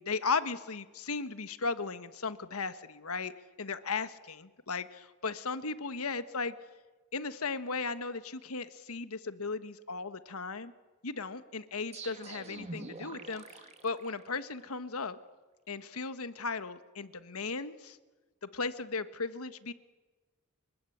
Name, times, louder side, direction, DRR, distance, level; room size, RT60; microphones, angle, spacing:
voice 1, 0.0-3.3 3.6-6.5 7.1-10.7 11.0-15.2 15.7-18.0 18.4-19.7, left 4 dB, 80° left, 12 dB, 1.4 m, -36 dB
sound 1, 11.9-14.7, right 3 dB, 30° right, 2.2 m, -46 dB
30.0 x 22.5 x 8.6 m, 1.3 s
head